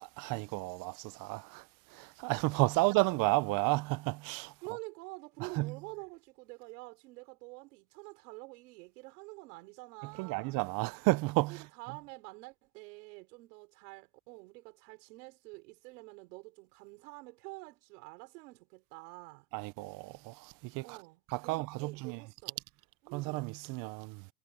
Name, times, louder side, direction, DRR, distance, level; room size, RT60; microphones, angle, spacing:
voice 1, 0.0-1.6 1.9-4.5 5.4-5.7 10.2-11.6 19.5-21.0 21.3-22.2 23.1-24.3, right 23 dB, 45° right, 0.6 m, -32 dB
voice 2, 4.6-10.6 11.5-19.5 20.8-22.6 23.0-23.5, right 26 dB, 85° right, 5.3 m, -48 dB
cardioid pair, 150°, 46 cm